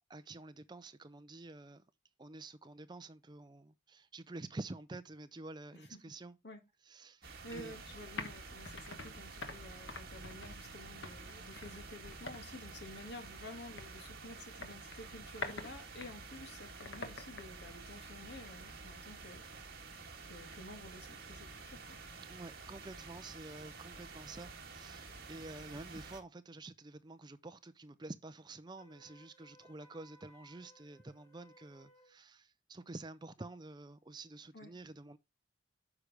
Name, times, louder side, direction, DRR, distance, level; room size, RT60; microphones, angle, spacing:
voice 1, 0.1-1.8 2.2-6.4 6.8-7.8 22.3-35.2, right 2 dB, 20° right, 0.4 m, -49 dB
voice 2, 5.7-6.1 6.4-6.6 7.4-19.4 20.2-22.0 34.5-34.7, left 1 dB, 55° left, 2.0 m, -51 dB
sound 1, 7.2-26.2, right 4 dB, 50° right, 2.0 m, -50 dB
sound 2, 7.4-18.8, left 3 dB, 70° left, 1.3 m, -49 dB
Wind instrument woodwind instrument, 28.7-32.2, equal, 10° left, 2.1 m, -63 dB
9.6 x 6.3 x 3.4 m
head